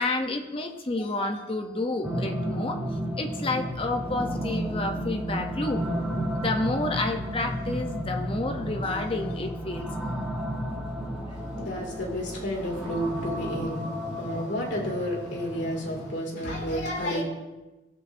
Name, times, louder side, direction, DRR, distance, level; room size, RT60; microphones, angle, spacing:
voice 1, 0.0-2.8 3.2-5.8 6.3-9.9, left 2 dB, 30° left, 4 dB, 0.6 m, -30 dB
sound 1, 2.0-16.2, equal, 5° right, 1.1 m, -33 dB
sound 2, 3.6-13.4, left 1 dB, 40° right, 2.5 m, -42 dB
voice 2, 11.3-17.2, equal, 70° left, -2 dB, 2.3 m, -31 dB
15.5 x 7.5 x 2.6 m, 1.1 s
head